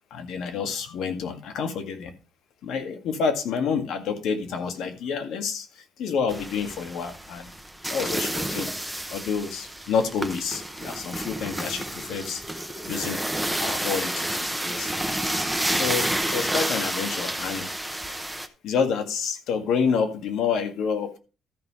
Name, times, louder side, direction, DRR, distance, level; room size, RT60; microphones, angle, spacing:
voice 1, 0.1-2.1 2.6-7.5 7.9-8.7 9.1-13.2 13.6-14.3 14.6-14.9 15.8-17.7 18.6-21.2, left 6 dB, 75° left, 7 dB, 1.9 m, -28 dB
sound 1, 6.3-18.5, right 1 dB, ahead, 0.8 m, -30 dB
13.0 x 5.7 x 4.8 m, 0.32 s
cardioid pair, 180°, 0 cm